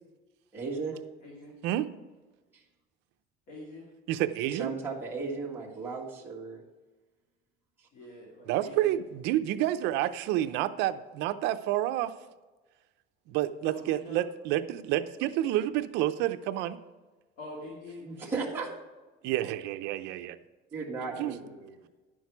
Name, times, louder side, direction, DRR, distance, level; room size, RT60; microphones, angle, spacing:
voice 1, 0.5-1.0 4.5-6.6 7.8-7.9 18.0-18.7 20.7-21.7, right 4 dB, 10° right, -5 dB, 1.8 m, -35 dB
voice 2, 1.2-1.5 3.5-3.8 7.9-9.0 13.6-14.2 17.4-18.0 18.4-18.6 21.0-21.5, left 1 dB, 45° left, -3 dB, 2.3 m, -45 dB
voice 3, 4.1-4.7 8.5-12.1 13.3-16.8 19.2-20.3 21.2-21.4, right 13 dB, 60° right, 9 dB, 0.6 m, -29 dB
10.5 x 6.3 x 4.7 m, 1.2 s
cardioid pair, 165°, 20 cm